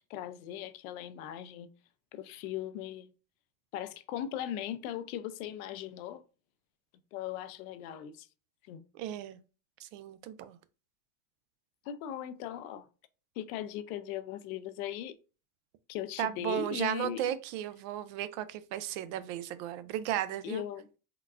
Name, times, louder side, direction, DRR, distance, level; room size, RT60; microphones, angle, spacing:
voice 1, 0.0-1.7 2.1-3.1 3.7-6.2 7.1-8.3 8.7-8.8 11.9-12.9 13.4-15.1 15.9-17.2 20.4-20.9, left 11 dB, 75° left, 0.5 m, -38 dB
voice 2, 8.9-9.4 9.8-10.6 16.2-20.6, right 11 dB, 65° right, 0.5 m, -35 dB
3.7 x 2.2 x 2.3 m
supercardioid pair, 100°, 43 cm